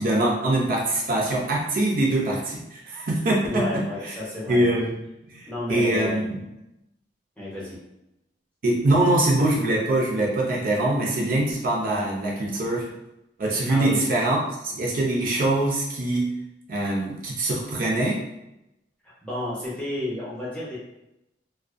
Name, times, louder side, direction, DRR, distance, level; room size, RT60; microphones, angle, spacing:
voice 1, 0.0-4.2 4.5-4.9 5.2-6.4 8.6-12.9 13.4-14.4 14.6-16.3 16.7-18.2, right 1 dB, 50° right, -3 dB, 0.5 m, -23 dB
voice 2, 3.5-4.6 5.5-6.3 7.4-7.8 13.7-14.0 19.0-20.8, left 1 dB, 5° left, -7 dB, 0.7 m, -31 dB
2.4 x 2.2 x 2.4 m, 0.88 s
head